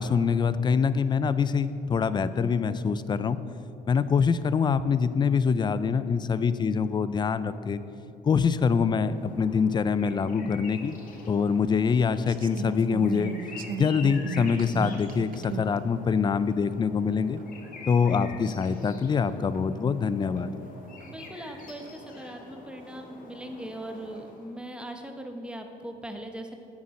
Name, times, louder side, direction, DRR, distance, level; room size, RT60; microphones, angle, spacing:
voice 1, 0.0-3.4 3.9-7.8 8.2-11.0 11.3-13.3 13.7-17.4 17.9-20.5, left 6 dB, 25° left, 14 dB, 0.4 m, -25 dB
sound 1, 8.7-24.7, left 3 dB, 55° left, 1.6 m, -46 dB
sound 2, 11.4-11.5 12.2-15.8 16.5-16.6 17.4-17.5 18.0-18.1 18.9-19.0 19.5-19.6 20.4-21.1 21.6-21.9, right 8 dB, 55° right, 0.6 m, -37 dB
voice 2, 21.0-26.5, right 1 dB, 5° right, 4 dB, 1.0 m, -40 dB
8.6 x 7.3 x 6.4 m, 2.6 s
cardioid pair, 110°, 17 cm